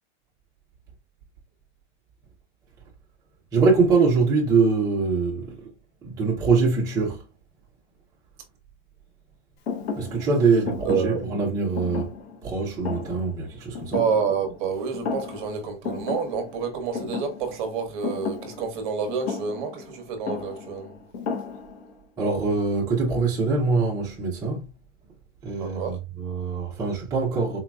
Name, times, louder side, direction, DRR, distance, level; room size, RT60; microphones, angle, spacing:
voice 1, 3.5-5.6 6.0-7.2 10.0-12.1 12.4-14.0 22.2-24.7 25.4-27.6, right 4 dB, 10° right, 0.7 m, -23 dB
Thump thud, 9.7-14.7 14.9-15.6 15.8-22.0, left 5 dB, 55° left, 1.0 m, -34 dB
voice 2, 10.8-11.2 13.9-20.9 25.6-26.0, right 6 dB, 40° right, 1.0 m, -28 dB
4.2 x 2.8 x 2.3 m
supercardioid pair, 165°, 37 cm